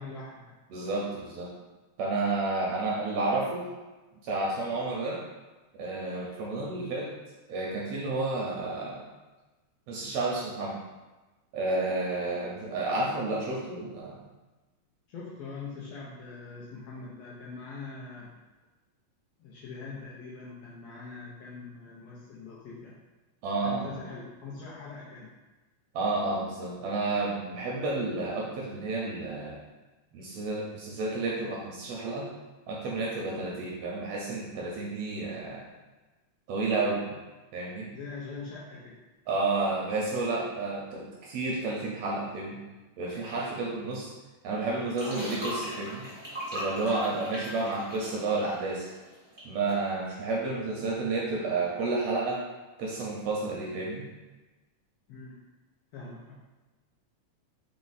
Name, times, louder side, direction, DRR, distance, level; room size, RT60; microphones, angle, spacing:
voice 1, 0.0-0.6 15.1-18.3 19.4-22.9 23.6-25.3 37.9-39.0 55.1-55.4 55.9-56.3, left 4 dB, 80° left, -6 dB, 1.4 m, -42 dB
voice 2, 0.7-1.5 2.0-3.7 4.2-5.2 5.8-7.1 7.5-9.1 9.9-10.8 11.5-14.2 23.4-24.0 25.9-29.6 30.1-32.3 32.7-35.7 36.5-37.0 37.5-37.9 39.3-42.6 43.0-44.1 44.4-46.0 46.5-48.9 49.4-52.4 52.8-54.0, right 3 dB, 80° right, -3 dB, 1.6 m, -31 dB
sound 1, 45.0-49.4 49.7-49.9, equal, 25° right, 0.5 m, -39 dB
4.8 x 2.1 x 3.9 m, 1.2 s
omnidirectional pair, 3.3 m